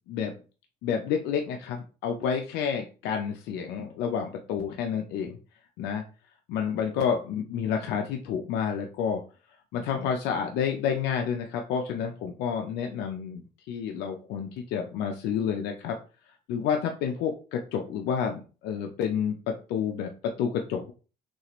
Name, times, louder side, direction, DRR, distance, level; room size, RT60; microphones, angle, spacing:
voice 1, 0.8-5.4 5.8-6.0 6.5-9.2 9.7-16.0 16.5-20.9, left 7 dB, 85° left, 3 dB, 0.6 m, -29 dB
6.2 x 2.5 x 3.0 m, 0.35 s
cardioid pair, 110°, 17 cm